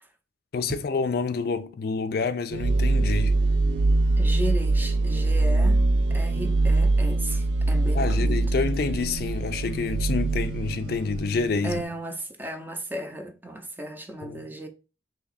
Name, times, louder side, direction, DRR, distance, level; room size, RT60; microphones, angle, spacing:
voice 1, 0.5-3.3 7.9-11.8 14.2-14.4, left 4 dB, 55° left, 0.4 m, -28 dB
sound 1, 2.5-11.8, right 2 dB, 85° right, 0.4 m, -23 dB
voice 2, 4.2-5.8 6.1-8.7 11.6-14.7, right 1 dB, 10° right, 0.5 m, -35 dB
3.4 x 2.8 x 4.0 m
head